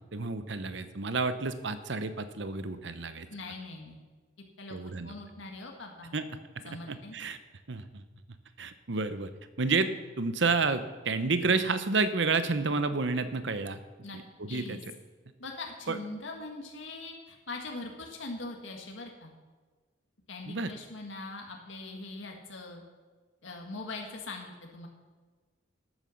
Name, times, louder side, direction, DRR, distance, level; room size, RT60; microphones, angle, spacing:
voice 1, 0.1-3.3 4.7-5.1 6.1-6.3 6.9-7.4 7.7-8.0 8.6-9.3 9.6-9.9 10.2-13.8 14.4-14.8 15.9-16.0 20.5-20.7, right 4 dB, 65° right, 11 dB, 0.9 m, -30 dB
voice 2, 3.3-4.0 4.6-6.1 6.6-7.2 14.0-14.2 14.5-14.8 15.4-19.3 20.3-22.8 23.4-24.9, left 2 dB, 75° left, 1 dB, 1.7 m, -42 dB
12.5 x 9.2 x 6.4 m, 1.4 s
head